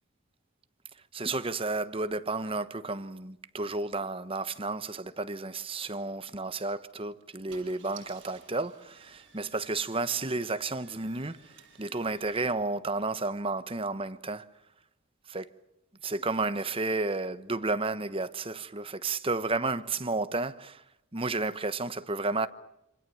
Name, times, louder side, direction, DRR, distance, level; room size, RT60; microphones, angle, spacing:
voice 1, 1.1-11.5 11.8-14.5 15.3-15.5 16.0-20.8 21.1-22.5, right 3 dB, 25° right, 1.1 m, -32 dB
Car / Engine starting, 6.4-6.6 7.2-7.3 7.5-12.5, right 6 dB, 60° right, 6.5 m, -56 dB
27.5 x 27.0 x 7.1 m
head